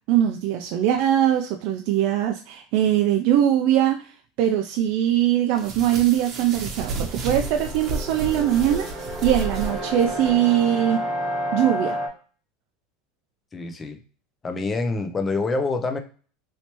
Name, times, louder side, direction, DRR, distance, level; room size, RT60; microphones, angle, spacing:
voice 1, 0.1-4.1 4.4-11.1 11.5-12.0, right 11 dB, 55° right, 4 dB, 0.3 m, -21 dB
sound 1, 5.6-10.3, right 3 dB, 35° right, 0.8 m, -32 dB
sound 2, 6.1-12.1, equal, 10° right, 1.3 m, -31 dB
voice 2, 13.5-14.0 14.4-16.0, left 3 dB, 20° left, 7 dB, 0.5 m, -26 dB
3.2 x 2.9 x 2.9 m, 0.41 s
supercardioid pair, 140°, 0 cm